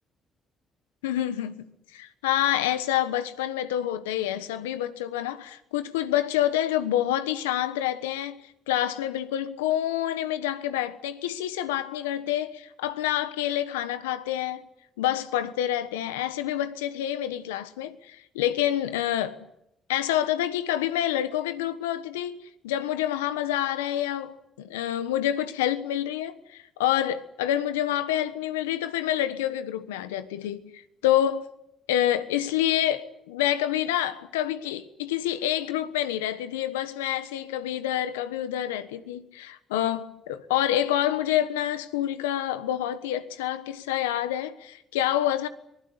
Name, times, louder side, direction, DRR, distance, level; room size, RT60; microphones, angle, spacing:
voice 1, 1.0-1.6 1.9-14.6 15.0-19.5 19.9-31.5 31.9-45.5, left 12 dB, 90° left, 1.2 m, -27 dB
24.5 x 20.0 x 9.6 m
hypercardioid pair, 50°, 0 cm